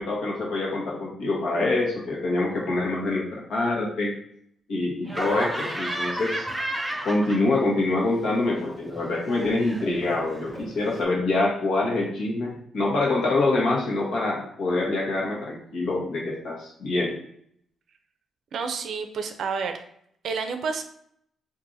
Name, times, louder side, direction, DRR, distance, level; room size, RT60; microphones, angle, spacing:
voice 1, 0.0-4.1 4.7-6.5 7.0-17.2, left 2 dB, 70° left, -3 dB, 1.1 m, -25 dB
Laughter, 5.1-7.8 8.1-11.0, right 1 dB, 5° right, 0.5 m, -33 dB
voice 2, 18.5-19.8 20.2-20.8, right 5 dB, 65° right, 7 dB, 0.4 m, -29 dB
4.6 x 2.5 x 2.6 m, 0.68 s
cardioid pair, 115°, 0 cm